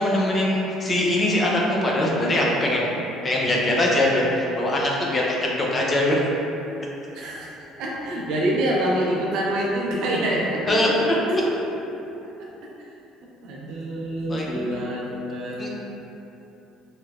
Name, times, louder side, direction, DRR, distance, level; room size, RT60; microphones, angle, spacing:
voice 1, 0.0-2.9 3.2-6.2 10.7-11.1 14.3-14.7 15.6-15.7, left 1 dB, 20° left, -3 dB, 0.4 m, -22 dB
voice 2, 7.1-10.6 11.3-11.5 12.2-12.5 12.9-13.0 13.4-15.7, right 1 dB, 60° right, -3 dB, 0.5 m, -26 dB
3.0 x 3.0 x 2.3 m, 2.9 s
cardioid pair, 165°, 0 cm